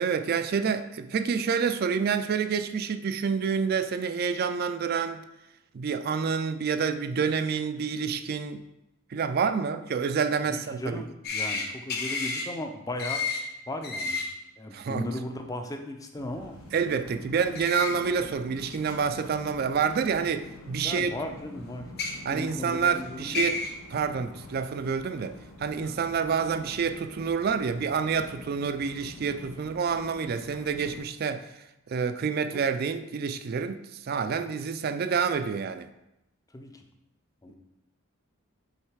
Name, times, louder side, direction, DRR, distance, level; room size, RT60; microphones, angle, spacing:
voice 1, 0.0-5.2 5.7-8.6 9.1-11.0 14.7-15.1 16.7-21.1 22.2-23.6 23.9-35.9, right 6 dB, 45° right, 0.3 m, -28 dB
voice 2, 10.4-13.2 13.7-14.3 14.6-16.6 20.8-21.9 22.3-23.5 32.5-32.6 36.5-36.9 37.4-37.5, left 1 dB, 15° left, 0.5 m, -36 dB
sound 1, 11.2-11.6 11.9-12.4 13.0-13.4 13.8-14.2 17.5-17.9 18.7-18.8 20.1-20.2 21.8-22.1 23.0-23.1 23.3-23.7, left 4 dB, 50° left, 0.9 m, -30 dB
sound 2, 16.2-31.0, left 2 dB, 85° left, 1.1 m, -46 dB
6.5 x 3.2 x 4.7 m
head